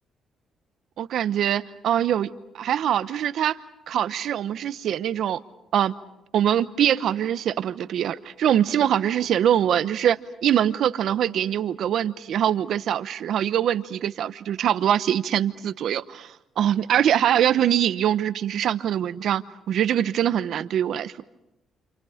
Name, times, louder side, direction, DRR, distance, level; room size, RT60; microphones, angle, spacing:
voice 1, 1.0-3.6 3.9-5.4 5.7-5.9 6.3-21.1, right 10 dB, 70° right, 13 dB, 1.0 m, -23 dB
29.5 x 27.5 x 5.1 m, 0.89 s
cardioid pair, 90°, 0 cm